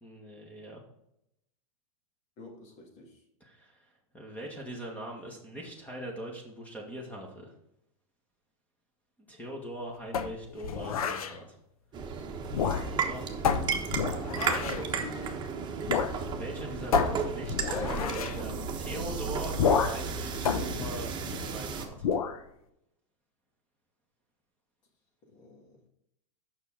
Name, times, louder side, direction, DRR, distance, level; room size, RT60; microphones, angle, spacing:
voice 1, 0.0-0.8 3.4-3.8 4.1-7.5 9.3-11.6 12.9-13.2 16.4-21.2 21.5-22.1, right 1 dB, 10° left, 0 dB, 1.7 m, -41 dB
voice 2, 2.4-3.2 14.3-15.3 17.6-19.2 25.2-25.8, left 2 dB, 40° left, 2 dB, 2.3 m, -43 dB
sound 1, 10.1-11.3 12.4-13.1 13.4-14.9 15.9-16.2 16.4-16.5 16.9-18.4 19.6-20.1 20.4-21.6 22.0-22.4, left 6 dB, 85° left, 0.9 m, -29 dB
sound 2, 11.9-21.9, right 6 dB, 25° right, 1.2 m, -34 dB
6.7 x 5.9 x 4.8 m, 0.80 s
supercardioid pair, 130°, 18 cm